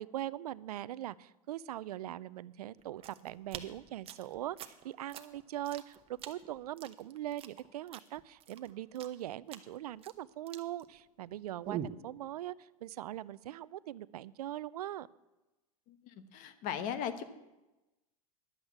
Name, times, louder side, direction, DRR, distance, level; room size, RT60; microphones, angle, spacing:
voice 1, 0.0-15.1, right 13 dB, 85° right, 19 dB, 0.5 m, -41 dB
sound 1, 2.8-11.3 11.6-12.0, right 9 dB, 30° right, 0.9 m, -45 dB
voice 2, 16.3-17.2, left 8 dB, 45° left, 11 dB, 1.2 m, -37 dB
11.0 x 8.0 x 7.2 m, 1.0 s
hypercardioid pair, 120°, 19 cm